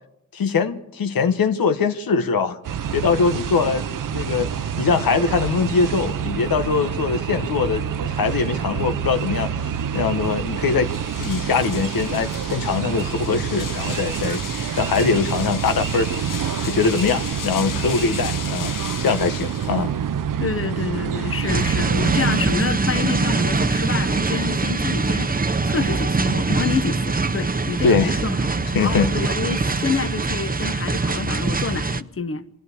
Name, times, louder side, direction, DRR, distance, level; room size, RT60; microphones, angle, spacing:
voice 1, 0.3-2.6 2.9-10.9 11.2-16.1 16.6-19.9 27.8-28.2 28.7-29.1, left 5 dB, 90° left, 1.3 m, -22 dB
sound 1, 2.6-22.4, right 8 dB, 70° right, 0.7 m, -27 dB
sound 2, 10.5-20.1, left 8 dB, 70° left, 0.9 m, -35 dB
voice 2, 20.4-28.5 28.8-32.4, left 5 dB, 40° left, 1.2 m, -28 dB
sound 3, 21.5-32.0, right 3 dB, 25° right, 0.9 m, -23 dB
23.0 x 15.5 x 8.2 m
wide cardioid pair, 100°, 34 cm